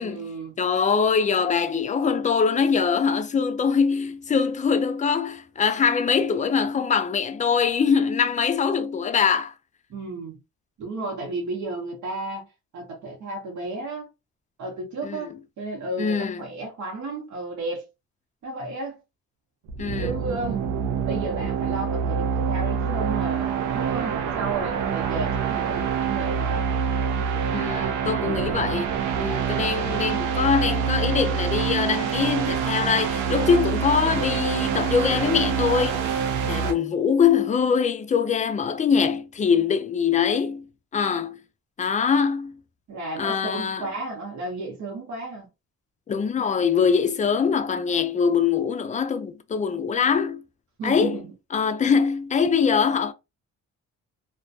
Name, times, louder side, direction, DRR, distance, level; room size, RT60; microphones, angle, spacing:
voice 1, 0.0-0.6 9.9-10.4 10.8-12.5 12.7-14.1 14.6-17.8 18.4-19.0 20.0-20.7 21.0-26.6 28.2-28.6 42.9-45.5 50.8-51.2, right 3 dB, 70° right, 1.0 m, -33 dB
voice 2, 0.6-9.5 15.0-15.3 16.0-16.4 19.8-20.1 27.5-28.9 29.2-40.7 40.9-41.4 41.8-42.6 43.2-43.9 46.1-50.4 50.8-51.2 51.5-53.1, left 6 dB, 25° left, 0.3 m, -23 dB
sound 1, 19.7-36.7, right 7 dB, 90° right, 0.6 m, -26 dB
2.3 x 2.1 x 2.6 m
cardioid pair, 90°, 30 cm